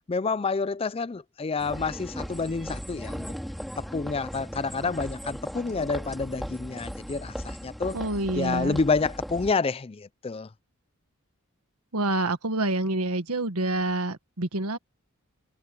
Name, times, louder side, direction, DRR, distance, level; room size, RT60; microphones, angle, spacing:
voice 1, 0.1-3.3 3.8-8.0 8.3-10.5, left 4 dB, 25° left, 0.4 m, -28 dB
sound 1, 1.6-9.5, equal, ahead, 3.3 m, -37 dB
voice 2, 7.9-8.8 11.9-14.8, right 2 dB, 90° right, 1.5 m, -27 dB
head